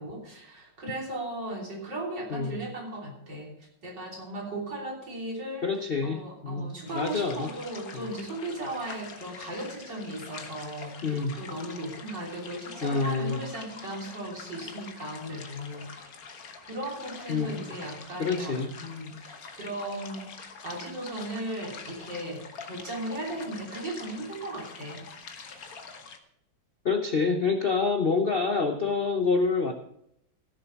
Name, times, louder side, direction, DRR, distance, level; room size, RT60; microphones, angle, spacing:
voice 1, 0.0-3.5 3.8-5.7 6.0-16.1 16.6-20.3 20.6-25.0, right 1 dB, 55° right, -1 dB, 3.9 m, -37 dB
voice 2, 2.3-2.6 5.6-7.5 7.9-8.1 11.0-11.3 12.8-13.4 17.3-17.6 18.2-18.7 26.8-29.7, left 4 dB, 85° left, 5 dB, 0.5 m, -27 dB
sound 1, 6.9-26.2, left 5 dB, 50° left, 1.5 m, -45 dB
16.0 x 6.9 x 5.8 m, 0.73 s
omnidirectional pair, 2.2 m